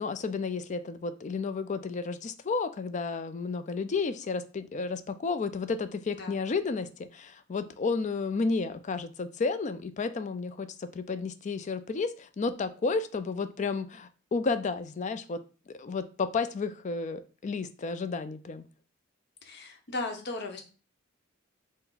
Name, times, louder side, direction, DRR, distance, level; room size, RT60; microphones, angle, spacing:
voice 1, 0.0-15.4 15.7-18.7, left 4 dB, 35° left, 11 dB, 0.4 m, -32 dB
voice 2, 19.4-20.6, left 2 dB, 55° left, 4 dB, 0.9 m, -36 dB
5.6 x 2.1 x 3.9 m, 0.36 s
head